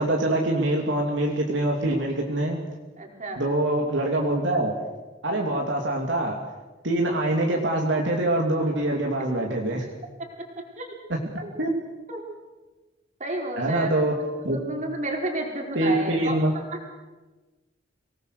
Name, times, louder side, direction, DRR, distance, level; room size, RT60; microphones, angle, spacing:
voice 1, 0.0-2.6 3.4-4.7 5.2-6.3 6.8-9.8 11.1-11.2 11.6-11.7 13.6-14.1 14.4-14.6 15.7-16.5, right 1 dB, 70° right, 0 dB, 2.8 m, -24 dB
voice 2, 3.0-3.4 10.8-10.9 11.4-11.5 12.1-12.2 13.2-13.9 14.2-16.6, right 2 dB, 40° right, 1 dB, 4.5 m, -32 dB
25.5 x 19.0 x 6.7 m, 1.2 s
head